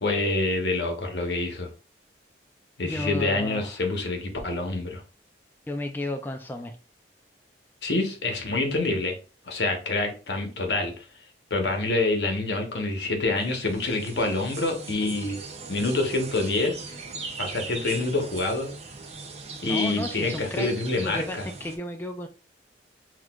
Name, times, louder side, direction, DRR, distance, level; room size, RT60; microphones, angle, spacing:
voice 1, 0.0-1.7 2.8-5.0 7.8-9.2 9.5-10.9 11.5-15.4 15.7-16.8 17.4-18.7 19.6-21.5, left 2 dB, 75° left, 3 dB, 0.9 m, -26 dB
voice 2, 2.8-3.7 5.7-6.8 19.6-20.7 21.0-22.3, left 1 dB, 10° left, 5 dB, 0.3 m, -33 dB
sound 1, 13.4-21.8, right 4 dB, 40° right, 0.6 m, -40 dB
6.0 x 2.4 x 2.3 m, 0.34 s
head